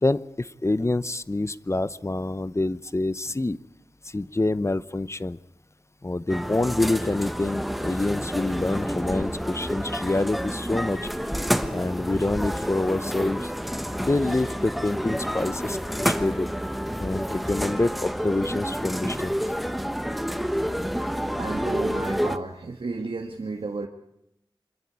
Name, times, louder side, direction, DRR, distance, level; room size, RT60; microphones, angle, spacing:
voice 1, 0.0-3.6 4.0-5.4 6.0-11.0 11.7-13.5 14.0-16.5 17.0-19.4, left 2 dB, 30° left, 16 dB, 0.8 m, -26 dB
sound 1, 6.3-22.4, equal, ahead, 1.2 m, -29 dB
voice 2, 21.0-23.9, right 3 dB, 85° right, 4 dB, 1.4 m, -33 dB
25.5 x 13.0 x 9.6 m, 0.82 s
wide cardioid pair, 55°, 9 cm